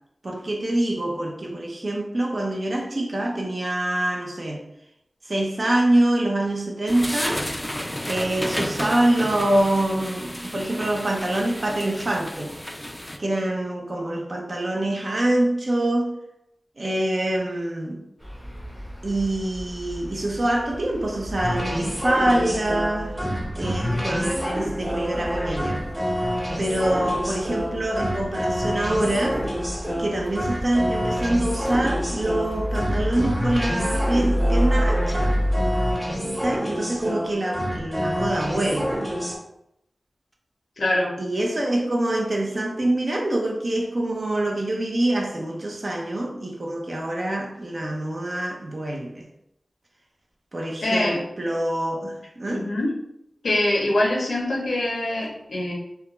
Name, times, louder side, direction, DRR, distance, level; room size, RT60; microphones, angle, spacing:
voice 1, 0.2-4.6 5.2-7.4 8.1-12.5 13.2-16.1 16.8-18.0 19.0-23.2 23.5-25.8 26.6-29.4 30.0-35.3 36.2-39.0 41.2-49.3 50.5-52.7, right 1 dB, 60° right, 0 dB, 0.5 m, -25 dB
sound 1, 6.9-13.2, equal, 15° left, 0.3 m, -32 dB
sound 2, 18.2-35.9, equal, 10° right, 0.7 m, -30 dB
sound 3, 21.3-39.3, equal, 30° right, 1.1 m, -27 dB
voice 2, 40.8-41.1 50.8-51.2 52.5-52.9 53.4-55.7, left 1 dB, 85° left, -2 dB, 0.6 m, -24 dB
2.3 x 2.1 x 2.9 m, 0.81 s
cardioid pair, 40°, 0 cm